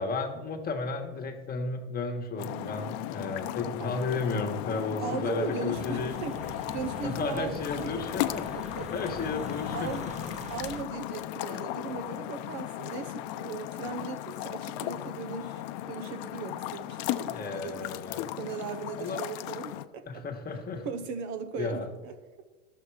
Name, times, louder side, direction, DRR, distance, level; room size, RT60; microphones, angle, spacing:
voice 1, 0.0-6.2 7.0-10.1 17.2-18.3 19.0-19.2 20.1-20.8 21.6-21.9, left 4 dB, 25° left, 3 dB, 1.5 m, -33 dB
sound 1, 2.4-19.9, left 14 dB, 55° left, 0.6 m, -36 dB
voice 2, 5.0-7.9 8.5-8.9 9.7-10.1 10.5-17.8 18.4-20.2 20.8-22.1, right 5 dB, 50° right, 8 dB, 0.9 m, -38 dB
sound 2, 5.7-10.8, right 4 dB, 20° right, 0.7 m, -44 dB
11.5 x 6.8 x 4.8 m, 1.2 s
supercardioid pair, 115°, 37 cm